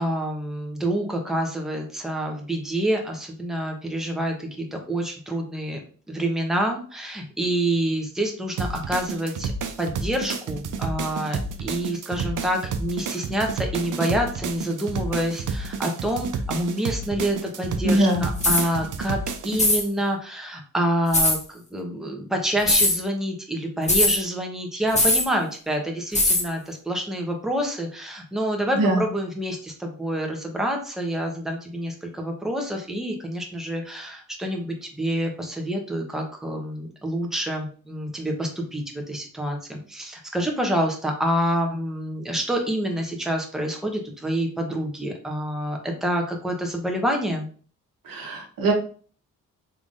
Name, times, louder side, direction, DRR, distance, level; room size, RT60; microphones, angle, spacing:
voice 1, 0.0-5.8 6.1-9.5 9.8-19.2 19.4-47.5, right 1 dB, ahead, 2 dB, 1.0 m, -27 dB
sound 1, 8.6-19.6, right 4 dB, 65° right, 0.6 m, -30 dB
voice 2, 17.8-18.2 28.7-29.0 48.0-48.7, right 1 dB, 80° right, 0 dB, 1.3 m, -21 dB
sound 2, 18.4-18.7 19.5-19.8 21.1-21.4 22.6-23.0 23.9-24.2 24.9-25.3 26.1-26.5, left 1 dB, 20° left, 1.1 m, -19 dB
3.6 x 3.4 x 2.6 m, 0.42 s
cardioid pair, 60°, 34 cm